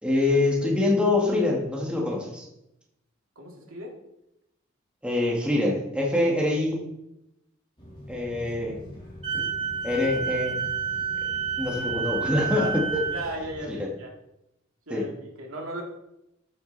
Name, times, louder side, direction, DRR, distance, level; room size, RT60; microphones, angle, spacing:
voice 1, 0.0-2.5 5.0-6.8 8.1-8.8 9.3-9.5 9.8-10.6 11.6-12.7 14.9-15.0, left 2 dB, 5° right, -2 dB, 1.8 m, -25 dB
voice 2, 3.4-3.9 12.5-12.7 13.1-14.1 14.9-15.8, right 1 dB, 90° right, -1 dB, 2.6 m, -36 dB
sound 1, 7.8-13.7, equal, 25° left, 3.5 m, -43 dB
Wind instrument woodwind instrument, 9.2-13.3, right 6 dB, 30° right, 2.3 m, -30 dB
12.5 x 6.7 x 4.1 m, 0.86 s
head